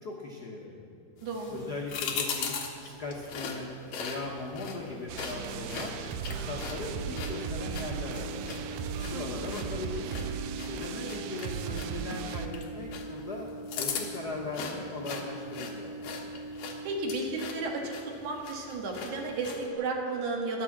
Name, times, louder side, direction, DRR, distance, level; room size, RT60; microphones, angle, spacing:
voice 1, 0.0-0.8 1.5-3.7 4.0-6.0 6.2-8.8 9.1-10.3 10.7-13.5 13.8-16.1, left 3 dB, 80° left, -2 dB, 0.8 m, -39 dB
sound 1, 1.2-19.7, left 5 dB, 60° left, 2.3 m, -40 dB
voice 2, 1.2-1.7 9.1-9.5 16.8-17.9 18.2-20.6, right 3 dB, 65° right, 0 dB, 3.0 m, -33 dB
sound 2, 5.1-12.5, right 7 dB, 80° right, 1.7 m, -37 dB
sound 3, 6.9-16.9, right 2 dB, 25° right, 0.9 m, -42 dB
14.5 x 11.0 x 7.4 m, 2.6 s
omnidirectional pair, 3.9 m